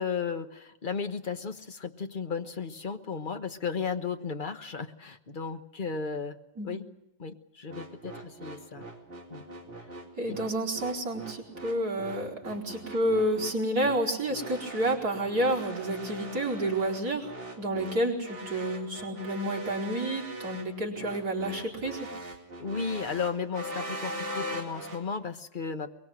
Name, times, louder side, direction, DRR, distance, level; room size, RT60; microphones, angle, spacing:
voice 1, 0.0-6.4 6.6-6.9 7.2-8.8 9.3-9.4 10.3-10.4 22.6-25.9, left 5 dB, 30° left, 8 dB, 1.0 m, -34 dB
sound 1, 7.7-25.0, right 1 dB, 35° right, 4.3 m, -41 dB
voice 2, 10.2-22.1, right 1 dB, 50° right, -2 dB, 4.8 m, -30 dB
23.0 x 22.5 x 7.8 m, 0.91 s
omnidirectional pair, 2.1 m